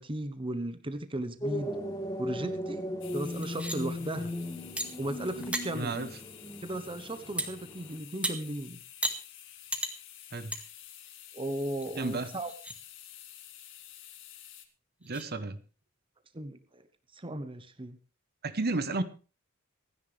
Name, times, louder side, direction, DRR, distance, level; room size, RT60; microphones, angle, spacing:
voice 1, 0.0-1.8 2.2-2.8 3.1-4.3 5.0-6.0 6.6-8.8 11.3-12.5 16.3-16.8 17.1-18.0, right 1 dB, 25° right, 10 dB, 1.0 m, -36 dB
sound 1, 1.4-8.0, left 1 dB, 15° left, 3.5 m, -37 dB
sound 2, 3.0-14.7, left 11 dB, 65° left, 2.1 m, -50 dB
sound 3, 3.4-3.8 4.8-4.9 5.3-5.6 7.4-7.5 8.2-8.3 9.0-9.2 9.7-9.9 10.5-10.6 11.1-11.2 11.8-11.9 12.4-12.8 14.4-14.5 15.0-15.3, right 1 dB, 5° right, 1.9 m, -33 dB
voice 2, 5.7-6.1 10.3-10.5 12.0-12.3 15.0-15.6 18.4-19.0, right 3 dB, 50° right, 12 dB, 1.1 m, -32 dB
26.5 x 10.0 x 3.4 m, 0.34 s
head